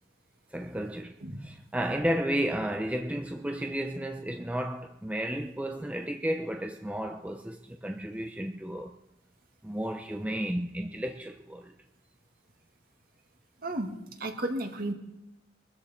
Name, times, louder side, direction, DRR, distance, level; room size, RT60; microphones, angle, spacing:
voice 1, 0.5-1.2 1.4-9.0 9.6-11.7, right 1 dB, 5° right, 0.6 m, -33 dB
voice 2, 13.6-14.9, right 1 dB, 50° right, 2.1 m, -33 dB
23.0 x 13.5 x 4.4 m
head